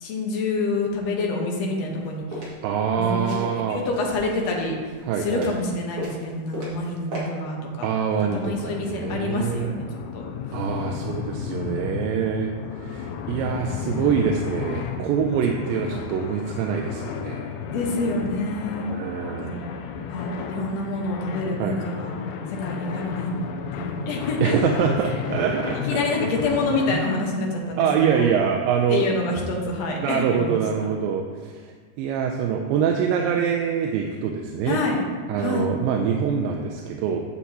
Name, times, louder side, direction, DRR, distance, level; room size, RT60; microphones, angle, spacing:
voice 1, 0.0-2.5 3.0-4.8 5.2-7.9 8.3-9.9 10.1-10.2 11.5-11.8 17.6-18.9 19.4-19.7 20.1-22.1 22.6-23.3 23.7-24.5 25.8-28.3 28.9-30.8 34.6-35.0 35.4-35.8, left 2 dB, 65° left, -1 dB, 1.8 m, -27 dB
sound 1, 1.8-2.5 3.2-4.5 4.9-5.7 6.0-6.9 7.1-7.2, equal, 40° right, 2.5 m, -35 dB
voice 2, 2.6-3.8 5.1-5.5 7.8-9.7 10.5-17.5 18.9-19.7 21.6-21.8 24.4-26.0 26.9-27.1 27.8-29.0 30.0-34.8 35.3-37.2, right 7 dB, 85° right, 2 dB, 2.3 m, -25 dB
sound 2, 8.3-26.9, left 7 dB, 80° left, 1.8 m, -33 dB
10.0 x 7.3 x 2.8 m, 1.5 s
omnidirectional pair, 4.0 m